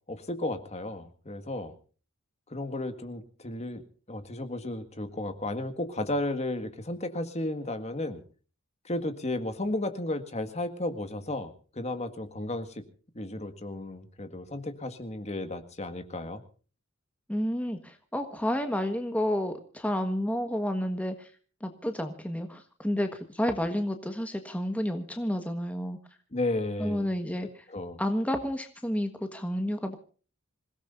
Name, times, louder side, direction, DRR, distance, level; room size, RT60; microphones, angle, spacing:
voice 1, 0.1-1.7 2.5-3.8 4.1-8.2 8.9-12.8 13.2-16.4 26.3-27.1 27.7-28.0, left 1 dB, 30° left, 9 dB, 1.8 m, -33 dB
voice 2, 17.3-21.3 21.6-26.0 26.8-27.7 28.0-30.0, equal, 5° left, 6 dB, 1.4 m, -30 dB
26.5 x 17.0 x 2.6 m, 0.39 s
head